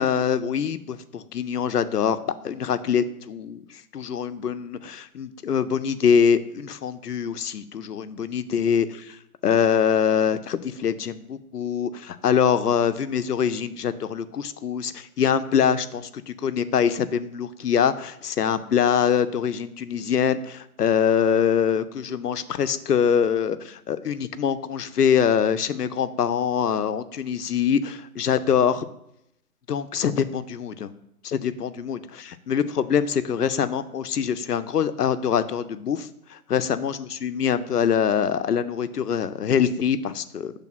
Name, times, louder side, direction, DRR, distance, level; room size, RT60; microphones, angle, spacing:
voice 1, 0.0-2.2 2.4-3.6 3.9-9.2 9.4-28.9 29.7-30.9 31.2-40.5, left 7 dB, 80° left, 12 dB, 0.6 m, -24 dB
6.2 x 3.4 x 5.8 m, 0.81 s
figure-of-eight pair, 135°, 47 cm